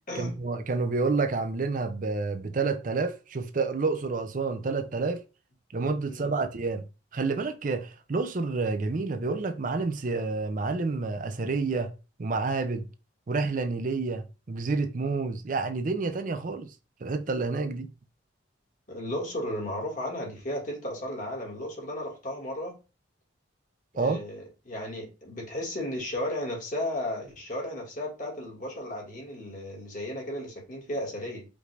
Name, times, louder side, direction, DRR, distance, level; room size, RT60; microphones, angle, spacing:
voice 1, 0.2-5.2 5.7-6.8 7.1-11.9 12.2-12.9 13.3-16.7 17.0-17.9 23.9-24.2, right 3 dB, 40° right, 0.5 m, -29 dB
voice 2, 18.9-22.7 23.9-31.5, left 1 dB, 40° left, 1.6 m, -34 dB
5.1 x 2.5 x 3.2 m
head